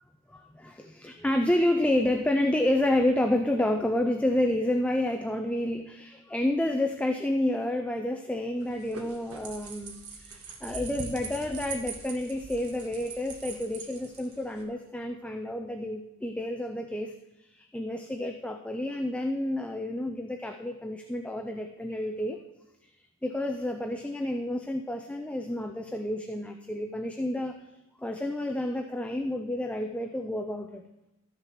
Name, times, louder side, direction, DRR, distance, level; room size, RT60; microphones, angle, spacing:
voice 1, 0.3-22.4 22.8-22.9 23.2-27.6 28.0-30.8, left 1 dB, 5° left, 5 dB, 0.4 m, -29 dB
sound 1, 8.6-14.6, right 5 dB, 85° right, 1.3 m, -42 dB
12.5 x 6.6 x 4.6 m, 0.92 s
head